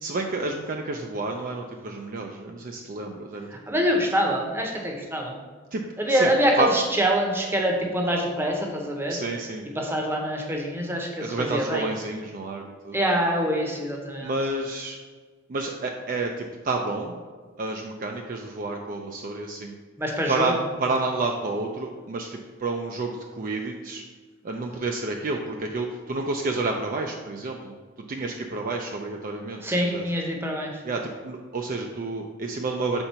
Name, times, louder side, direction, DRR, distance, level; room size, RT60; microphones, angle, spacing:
voice 1, 0.0-3.5 5.7-5.8 6.1-6.3 6.6-6.7 9.1-9.7 11.2-13.0 14.2-15.0 15.5-17.2 17.6-19.7 20.3-24.0 24.4-27.7 28.1-30.0 30.8-33.0, right 3 dB, 40° right, 2 dB, 0.4 m, -30 dB
voice 2, 3.5-5.3 6.0-9.2 9.7-11.8 12.9-14.3 20.0-20.6 29.6-30.8, equal, 10° right, 0 dB, 0.8 m, -25 dB
4.4 x 3.8 x 5.5 m, 1.5 s
head